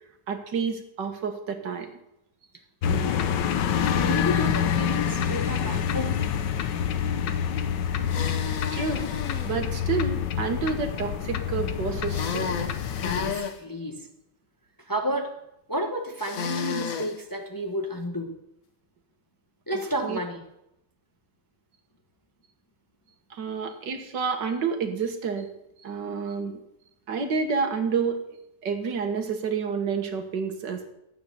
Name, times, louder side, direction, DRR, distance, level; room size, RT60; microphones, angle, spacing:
voice 1, 0.3-1.9 8.7-9.1 9.4-12.6 20.0-20.2 23.3-25.5 25.8-26.6 27.1-28.2 28.6-30.9, right 5 dB, 85° right, 5 dB, 2.1 m, -29 dB
sound 1, 2.8-13.3, left 8 dB, 90° left, 1.5 m, -27 dB
voice 2, 2.9-3.4 4.0-6.3 7.3-7.4 13.0-14.1 14.8-15.3 15.7-18.4 19.7-20.4, equal, 15° left, 3 dB, 1.0 m, -31 dB
sound 2, 8.0-9.5 12.1-13.6 16.2-17.1, left 6 dB, 55° left, 1.3 m, -32 dB
13.0 x 8.7 x 6.7 m, 0.83 s
omnidirectional pair, 1.9 m